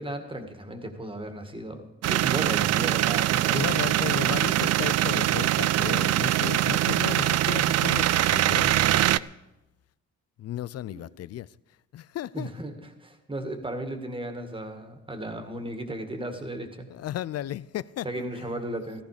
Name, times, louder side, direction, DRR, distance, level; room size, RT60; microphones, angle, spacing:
voice 1, 0.0-3.6 10.8-11.0 12.3-12.7 13.0-16.9 18.0-19.0, right 1 dB, 15° right, 2.1 m, -35 dB
sound 1, 2.0-9.2, right 14 dB, 60° right, 0.4 m, -23 dB
voice 2, 3.5-9.3 10.4-11.5 11.9-12.5 16.9-18.6, left 12 dB, 55° left, 0.5 m, -35 dB
15.0 x 14.5 x 5.0 m
cardioid pair, 90°, 30 cm